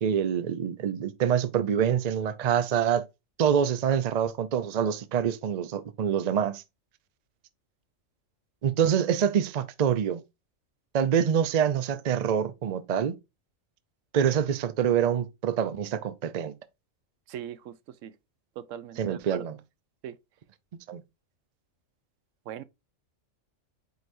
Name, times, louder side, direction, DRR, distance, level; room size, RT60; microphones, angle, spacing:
voice 1, 0.0-3.1 3.4-6.6 8.6-10.2 10.9-13.2 14.1-16.5 19.0-19.6 20.9-21.0, right 8 dB, 50° right, 0.5 m, -26 dB
voice 2, 17.3-17.8 18.0-18.2 18.6-19.4 20.0-20.2 22.5-22.6, right 10 dB, 75° right, 0.9 m, -39 dB
7.9 x 4.6 x 2.6 m
omnidirectional pair, 1.4 m